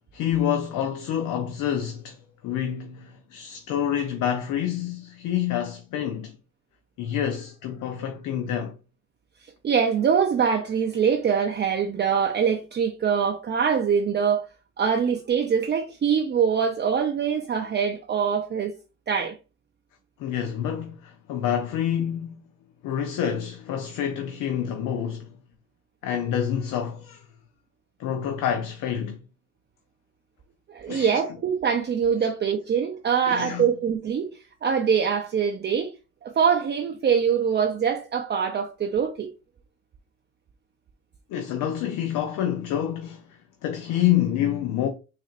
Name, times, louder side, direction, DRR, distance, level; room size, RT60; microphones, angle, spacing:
voice 1, 0.1-6.4 7.0-8.7 20.2-22.5 22.8-25.3 26.0-27.3 28.0-29.2 30.9-31.2 33.3-33.7 41.3-44.9, left 10 dB, 90° left, 0.6 m, -27 dB
voice 2, 9.6-14.4 14.8-18.7 19.1-19.4 30.7-34.3 34.6-35.9 36.2-39.3, right 7 dB, 35° right, 0.5 m, -23 dB
4.1 x 2.5 x 2.5 m
cardioid pair, 90°, 30 cm